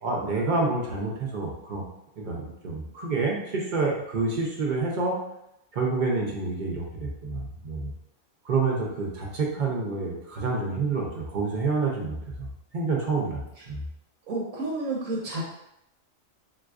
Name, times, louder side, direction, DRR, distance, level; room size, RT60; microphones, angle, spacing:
voice 1, 0.0-1.8 2.2-5.2 5.7-7.9 8.4-12.5 12.7-13.4 13.7-13.8, right 3 dB, 50° right, -2 dB, 0.6 m, -28 dB
voice 2, 14.3-15.5, right 2 dB, 80° right, -4 dB, 1.1 m, -31 dB
3.8 x 2.5 x 2.3 m, 0.82 s
omnidirectional pair, 1.4 m